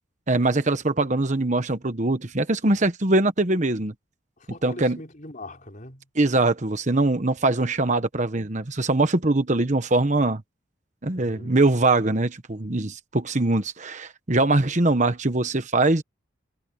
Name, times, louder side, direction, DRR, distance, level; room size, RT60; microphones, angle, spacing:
voice 1, 0.3-3.9 4.6-5.0 6.2-10.4 11.0-16.0, right 2 dB, 40° right, 1.2 m, -22 dB
voice 2, 4.4-6.1 11.1-11.6, left 2 dB, 40° left, 5.1 m, -41 dB
head